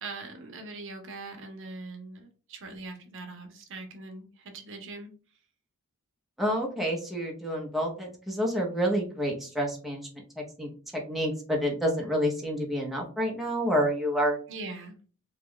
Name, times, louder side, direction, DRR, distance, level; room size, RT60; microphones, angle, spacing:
voice 1, 0.0-5.1 14.5-15.0, right 3 dB, 60° right, 4 dB, 0.7 m, -41 dB
voice 2, 6.4-10.1 10.6-14.4, equal, ahead, -2 dB, 0.7 m, -28 dB
3.1 x 2.3 x 3.7 m, 0.38 s
head